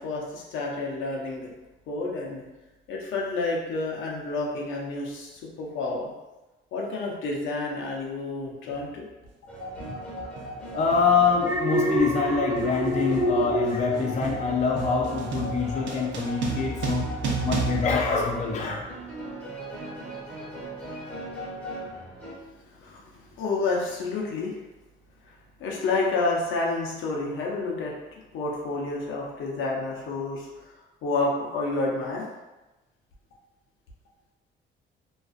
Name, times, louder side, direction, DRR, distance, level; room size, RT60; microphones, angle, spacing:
voice 1, 0.0-1.5 1.9-2.4 2.9-6.1 6.7-9.0 22.8-24.5 25.6-27.9 28.3-30.5 31.0-32.2, left 3 dB, 80° left, -2 dB, 0.6 m, -29 dB
sound 1, 8.7-8.9 9.8-10.1 10.4-18.9, right 4 dB, 70° right, 0.5 m, -33 dB
sound 2, 9.5-22.3, equal, 10° left, 1.2 m, -38 dB
voice 2, 9.9-10.3 10.7-18.9, left 5 dB, 35° left, 1 dB, 0.4 m, -25 dB
Alarm, 11.3-14.7 15.0-15.4, right 1 dB, 15° right, 0.8 m, -27 dB
2.4 x 2.3 x 2.4 m, 1.1 s
cardioid pair, 90°, 20 cm